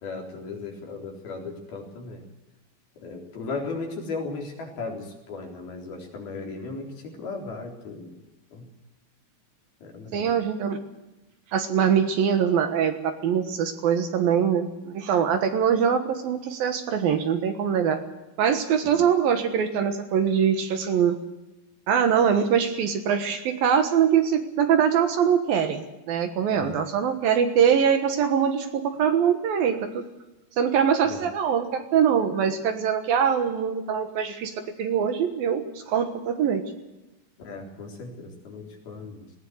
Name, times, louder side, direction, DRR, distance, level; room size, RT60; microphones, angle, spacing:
voice 1, 0.0-2.2 3.0-8.2 8.5-8.7 9.8-10.3 18.8-19.0 26.5-26.8 31.0-31.2 37.4-39.3, left 3 dB, 60° left, 1 dB, 5.6 m, -36 dB
voice 2, 10.1-10.8 11.5-18.0 18.4-21.2 21.9-30.0 30.6-36.7, right 8 dB, 65° right, 7 dB, 2.9 m, -23 dB
19.5 x 18.0 x 7.9 m, 1.0 s
omnidirectional pair, 4.9 m